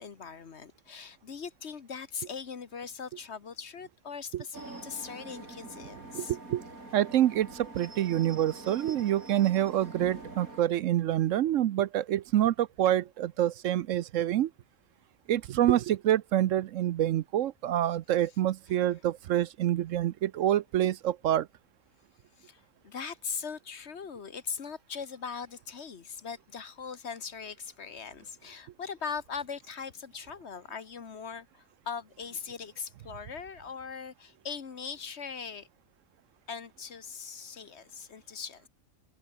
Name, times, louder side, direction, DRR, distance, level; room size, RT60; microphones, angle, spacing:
voice 1, 0.0-6.3 22.4-35.7 36.5-38.7, left 6 dB, 55° left, 1.5 m, -40 dB
sound 1, 4.5-10.6, right 2 dB, 90° right, 5.9 m, -45 dB
voice 2, 6.1-6.6 6.9-14.5 15.3-21.5, right 12 dB, 70° right, 0.9 m, -27 dB
omnidirectional pair, 1.4 m